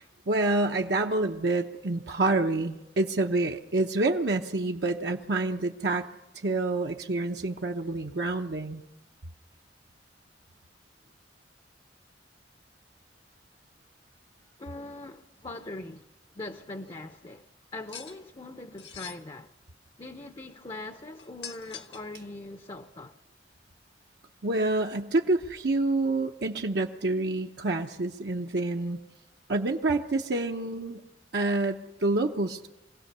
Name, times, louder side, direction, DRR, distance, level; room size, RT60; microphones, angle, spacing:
voice 1, 0.3-6.1 6.4-8.8 24.4-29.0 29.5-31.0 31.3-32.7, right 2 dB, 70° right, 0.8 m, -27 dB
voice 2, 14.6-16.1 16.3-17.5 17.7-19.5 20.0-23.2, left 2 dB, 30° left, 0.7 m, -41 dB
sound 1, 17.9-18.2 18.8-19.2 21.2-22.1, left 8 dB, 85° left, 1.4 m, -42 dB
24.0 x 17.0 x 6.8 m
head